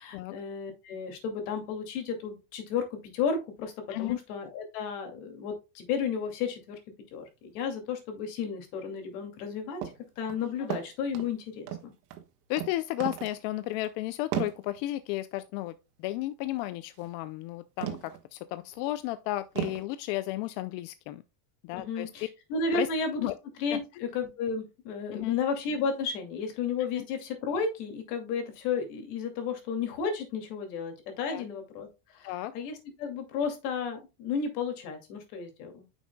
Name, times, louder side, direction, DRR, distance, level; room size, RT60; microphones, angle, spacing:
voice 1, 0.0-3.7 4.0-6.8 7.1-9.8 10.2-11.9 21.8-23.3 23.6-31.9 32.1-35.9, left 5 dB, 70° left, 2.5 m, -33 dB
sound 1, 9.8-10.0 10.3-11.3 11.7-12.3 12.6-12.7 13.0-13.4 13.7-13.9 14.3-14.6 16.9-17.1 17.8-18.2 18.7-18.8 19.6-19.8, right 11 dB, 85° right, 1.6 m, -34 dB
voice 2, 12.5-21.2 21.6-22.1 22.7-22.9 23.2-23.4 23.7-23.8 25.1-25.3 27.0-27.1 31.3-31.4 32.2-32.5, left 16 dB, 50° left, 0.5 m, -33 dB
9.3 x 6.1 x 2.2 m
supercardioid pair, 150°, 47 cm